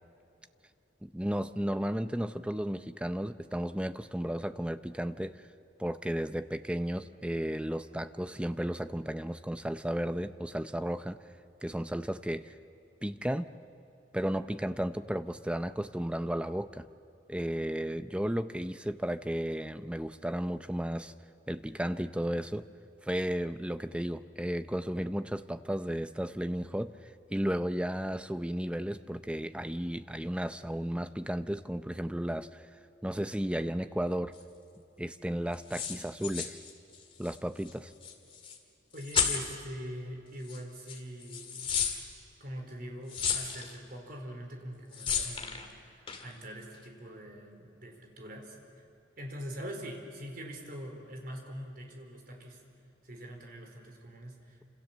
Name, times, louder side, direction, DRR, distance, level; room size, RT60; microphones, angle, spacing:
voice 1, 1.0-5.5 5.8-11.2 11.6-12.5 13.0-13.5 14.1-16.9 17.3-21.1 21.5-22.7 23.0-32.7 33.0-34.3 35.0-36.6 37.2-37.9, equal, 5° right, 11 dB, 0.6 m, -34 dB
sound 1, 34.4-34.5 35.5-37.4 37.6-37.7 38.0-38.6 38.9-39.6 40.4-40.6 40.9-42.0 43.1-43.7 44.9-45.7 46.1-46.3, left 7 dB, 30° left, 2.2 m, -33 dB
voice 2, 38.9-41.7 42.4-48.6 49.2-52.6 53.0-54.6, equal, 50° right, 2 dB, 4.4 m, -43 dB
29.0 x 27.0 x 7.4 m, 2.8 s
head